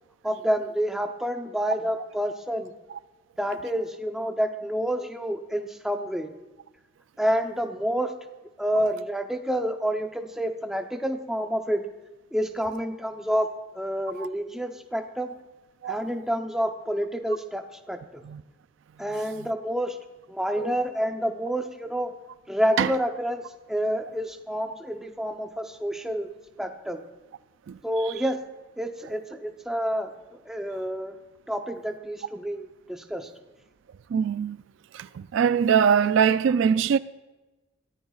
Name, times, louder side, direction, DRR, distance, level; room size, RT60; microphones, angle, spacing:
voice 1, 0.2-2.7 3.4-6.3 7.2-8.1 8.6-11.8 12.3-13.5 13.7-15.3 15.9-18.0 19.0-20.0 20.3-22.1 22.5-26.3 26.6-27.0 27.8-28.4 28.8-30.1 30.5-31.2 31.5-33.3, equal, ahead, 0.7 m, -28 dB
voice 2, 34.1-34.6 34.9-35.1 35.3-37.0, right 7 dB, 65° right, 0.3 m, -22 dB
22.0 x 14.5 x 2.4 m
head